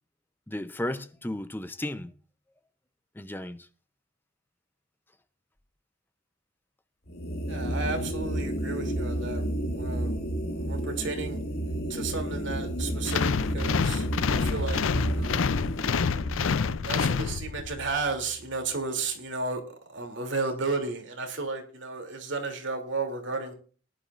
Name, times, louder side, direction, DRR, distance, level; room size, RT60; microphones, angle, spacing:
voice 1, 0.5-2.1 3.2-3.7, left 1 dB, 10° left, 0.6 m, -34 dB
sound 1, 7.1-18.4, right 1 dB, 50° left, 1.6 m, -32 dB
voice 2, 7.5-9.4 9.7-10.2 10.6-11.4 11.9-14.1 14.3-14.8 15.1-15.5 16.4-19.6 19.9-23.5, right 3 dB, 60° right, 3.0 m, -33 dB
sound 2, 13.1-17.8, left 6 dB, 70° left, 0.5 m, -27 dB
20.0 x 11.0 x 2.5 m
head